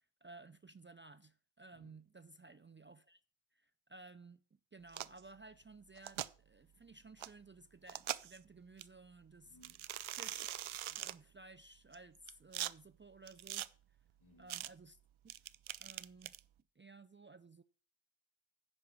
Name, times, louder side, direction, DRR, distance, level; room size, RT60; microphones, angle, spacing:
voice 1, 0.2-3.2 3.5-4.4 4.7-9.6 10.1-13.7 14.4-15.0 15.2-15.4 15.8-16.3 16.8-17.6, right 3 dB, 25° right, 0.5 m, -57 dB
sound 1, 4.9-5.2 6.0-6.3 7.2-7.3 7.9-8.4 8.8-8.9 9.6-11.1 11.9-12.7 13.3-13.7 14.5-14.7 15.3-16.4, right 12 dB, 70° right, 0.6 m, -42 dB
voice 2, 9.4-10.0 14.2-14.6, equal, 75° left, 2.7 m, -65 dB
10.5 x 4.8 x 7.0 m
cardioid pair, 50°, 50 cm